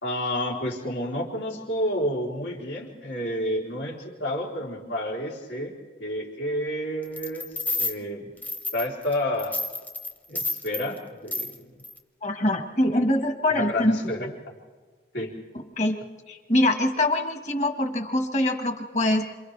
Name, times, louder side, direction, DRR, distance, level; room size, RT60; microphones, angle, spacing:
voice 1, 0.0-7.5 7.8-8.3 8.7-9.6 10.3-11.7 13.5-14.3 15.1-15.4, left 1 dB, 85° left, -2 dB, 3.7 m, -30 dB
sound 1, 7.2-8.0 8.4-9.1 9.4-10.9 11.3-11.6 11.8-12.0, left 2 dB, 10° left, 0.8 m, -30 dB
voice 2, 12.2-14.0 15.8-15.9 16.3-19.2, left 1 dB, 40° left, 5 dB, 1.6 m, -24 dB
28.0 x 27.5 x 3.3 m, 1.4 s
head